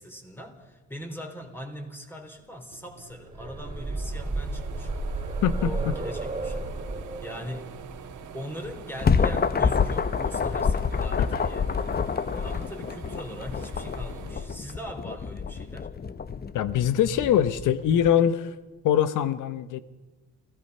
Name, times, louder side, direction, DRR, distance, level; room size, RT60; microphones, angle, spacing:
voice 1, 0.0-5.0 5.5-6.7 7.2-7.8 8.3-11.7 12.3-15.9, equal, 5° left, 4 dB, 3.9 m, -41 dB
sound 1, 2.4-2.5 2.7-15.3 15.7-16.9, right 6 dB, 75° right, 1.9 m, -45 dB
Creepy Sound, 3.1-10.9 12.0-12.1 12.5-12.6, right 2 dB, 20° right, 3.7 m, -34 dB
voice 2, 5.4-6.0 11.2-11.4 16.5-18.6 18.8-19.8, left 9 dB, 85° left, 14 dB, 1.1 m, -23 dB
sound 2, 8.6-18.1, left 6 dB, 30° left, 0.9 m, -27 dB
28.5 x 16.5 x 5.6 m, 1.2 s
cardioid pair, 90°, 30 cm